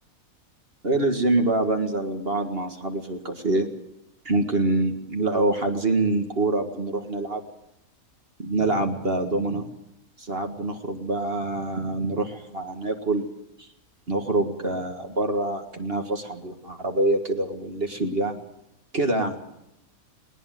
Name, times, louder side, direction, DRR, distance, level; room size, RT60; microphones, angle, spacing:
voice 1, 0.8-3.7 4.3-7.4 8.4-9.7 10.2-13.3 13.6-13.7 14.1-18.4 18.9-19.4, right 2 dB, 40° right, 4 dB, 1.9 m, -25 dB
20.0 x 19.5 x 7.7 m, 0.83 s
omnidirectional pair, 1.5 m